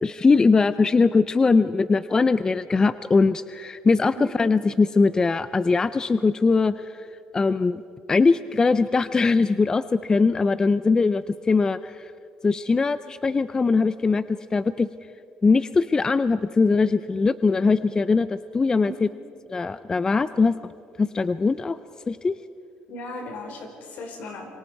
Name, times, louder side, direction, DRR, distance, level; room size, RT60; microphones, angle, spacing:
voice 1, 0.0-7.1 7.3-7.8 8.1-12.1 12.4-14.9 15.4-19.1 19.5-20.7 21.0-21.8 22.1-22.4, left 4 dB, 25° left, 14 dB, 0.5 m, -21 dB
voice 2, 22.9-24.5, left 1 dB, 70° left, 3 dB, 4.9 m, -36 dB
27.5 x 24.5 x 4.7 m, 2.7 s
cardioid pair, 105°, 3 cm